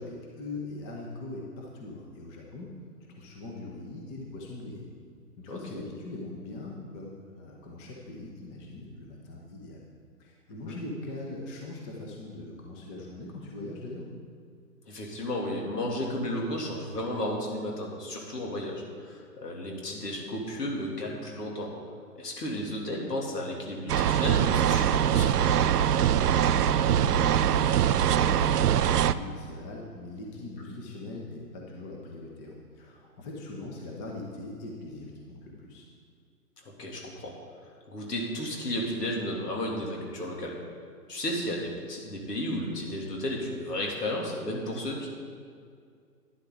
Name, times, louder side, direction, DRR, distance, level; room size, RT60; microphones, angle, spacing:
voice 1, 0.0-2.7 3.2-4.9 5.4-9.8 10.2-14.1 26.1-35.9, left 2 dB, 15° left, -1 dB, 1.0 m, -41 dB
voice 2, 5.5-5.8 10.7-10.8 14.9-21.7 22.1-25.7 36.8-37.3 37.9-40.5 41.1-45.1, left 1 dB, 70° left, -1 dB, 2.9 m, -33 dB
Wind Rhythm, 23.9-29.1, right 10 dB, 70° right, 0.5 m, -23 dB
11.5 x 10.5 x 3.9 m, 2.2 s
hypercardioid pair, 140°, 49 cm